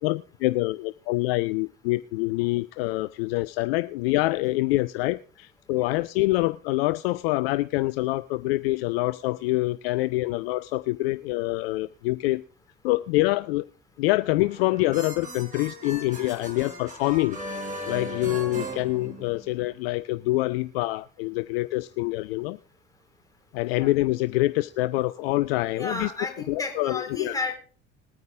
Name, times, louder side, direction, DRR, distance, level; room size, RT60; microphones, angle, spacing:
voice 1, 0.0-12.4 12.8-13.6 14.0-17.4 17.9-22.6 23.5-26.1 26.5-27.4, left 19 dB, 55° left, 0.5 m, -26 dB
sound 1, 14.4-19.7, equal, 20° right, 5.3 m, -38 dB
voice 2, 25.8-27.5, left 3 dB, 10° left, 3.8 m, -32 dB
20.5 x 9.3 x 3.5 m
figure-of-eight pair, 65°, 37 cm